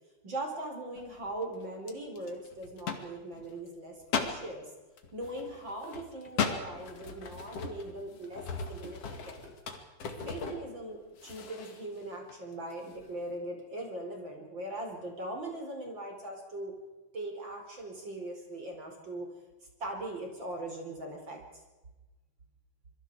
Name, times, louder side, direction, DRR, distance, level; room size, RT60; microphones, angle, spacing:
voice 1, 0.2-4.7 5.1-9.5 10.2-16.7 17.1-19.3 19.8-21.4, right 1 dB, 25° right, 2 dB, 4.8 m, -40 dB
sound 1, 0.9-1.3 1.9-3.6 4.0-4.4 5.0-10.9 11.2-11.9 12.3-12.4 12.7-13.0, left 5 dB, 45° left, 2.4 m, -37 dB
sound 2, 5.2-5.4 5.8-6.0 6.4-6.7 7.0-7.2 7.6-8.0 8.2-8.4 8.8-9.1 9.4-9.6, right 5 dB, 85° right, 6.1 m, -52 dB
27.0 x 23.0 x 4.9 m, 1.1 s
omnidirectional pair, 5.2 m